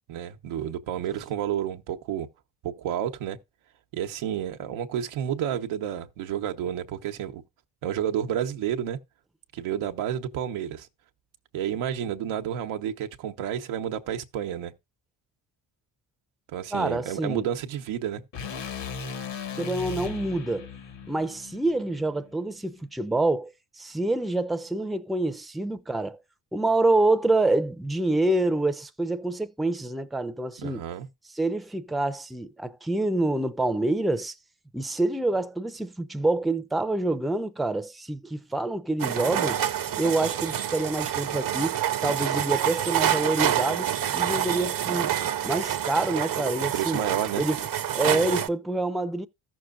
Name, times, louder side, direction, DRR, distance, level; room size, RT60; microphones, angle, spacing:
voice 1, 0.1-2.3 2.6-3.4 3.9-7.4 7.8-9.0 9.5-10.9 11.5-14.7 16.5-18.2 30.6-31.1 46.7-47.4, right 10 dB, 90° right, 1.0 m, -30 dB
voice 2, 16.7-17.4 19.6-20.7 21.1-26.2 26.5-30.8 31.3-34.3 34.7-39.6 40.0-47.0 47.4-47.6 47.9-49.3, right 2 dB, ahead, 0.6 m, -27 dB
sound 1, 18.3-22.5, left 5 dB, 65° left, 2.0 m, -37 dB
sound 2, 39.0-48.5, right 10 dB, 45° right, 0.7 m, -27 dB
14.0 x 6.3 x 2.4 m
supercardioid pair, 70°, 47 cm